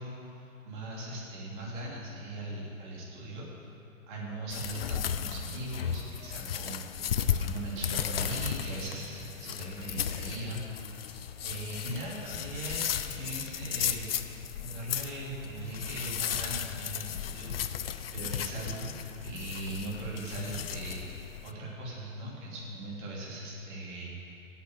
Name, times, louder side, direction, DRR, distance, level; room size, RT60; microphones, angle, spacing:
voice 1, 0.0-3.7 4.1-10.6 11.4-14.0 14.6-19.0 19.2-24.5, right 1 dB, 35° right, -4 dB, 3.1 m, -39 dB
sound 1, 4.5-21.5, left 9 dB, 45° left, 0.5 m, -35 dB
8.3 x 8.1 x 8.8 m, 2.7 s
figure-of-eight pair, 130°, 42 cm